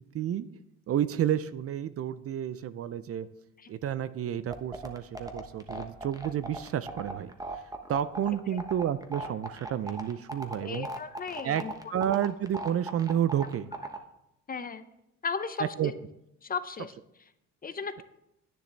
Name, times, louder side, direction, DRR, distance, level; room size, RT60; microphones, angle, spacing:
voice 1, 0.1-0.5 0.9-3.3 3.7-7.6 7.9-10.9 11.4-11.6 11.9-13.7 15.8-15.9, right 10 dB, 50° right, 14 dB, 0.5 m, -30 dB
sound 1, 4.5-14.0, right 2 dB, 10° right, 1.0 m, -37 dB
voice 2, 10.6-11.7 14.5-14.8 15.2-15.9 16.4-16.9 17.6-18.0, left 5 dB, 30° left, 11 dB, 0.6 m, -35 dB
10.0 x 9.1 x 3.4 m, 0.82 s
cardioid pair, 90°, 30 cm